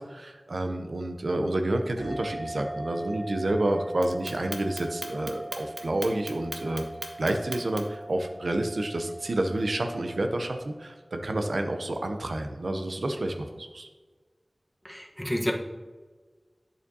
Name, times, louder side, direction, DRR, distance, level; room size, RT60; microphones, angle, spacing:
voice 1, 0.0-6.8 7.2-13.9, right 1 dB, 85° right, 5 dB, 0.6 m, -29 dB
sound 1, 2.0-11.0, right 1 dB, 15° right, 2.2 m, -42 dB
Clock, 4.0-8.0, right 2 dB, 70° right, 0.9 m, -38 dB
voice 2, 14.8-15.5, equal, 5° left, 1 dB, 1.0 m, -29 dB
8.6 x 7.0 x 2.7 m, 1.4 s
wide cardioid pair, 45°, 0 cm